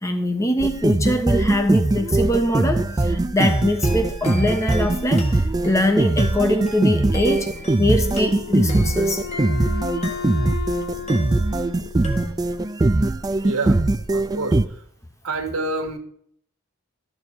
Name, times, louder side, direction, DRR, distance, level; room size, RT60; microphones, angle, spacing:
voice 1, 0.0-7.5 7.8-9.3, left 1 dB, 15° left, 1.1 m, -23 dB
sound 1, 0.6-14.7, right 2 dB, 15° right, 0.3 m, -21 dB
sound 2, 3.4-10.7 11.1-11.8 12.0-12.7, left 1 dB, 30° left, 1.6 m, -39 dB
Wind instrument woodwind instrument, 8.1-12.6, left 9 dB, 50° left, 0.6 m, -35 dB
voice 2, 13.4-13.8 14.1-14.8 15.2-16.0, right 3 dB, 80° right, 1.6 m, -27 dB
12.5 x 7.0 x 4.5 m
head